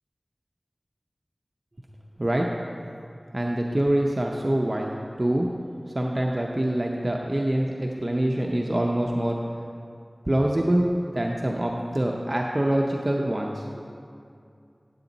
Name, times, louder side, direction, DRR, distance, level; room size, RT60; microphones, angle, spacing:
voice 1, 3.3-5.5 5.9-9.4 10.3-13.6, right 1 dB, 40° right, 0 dB, 0.6 m, -25 dB
10.0 x 8.4 x 4.0 m, 2.4 s
wide cardioid pair, 50°, 0 cm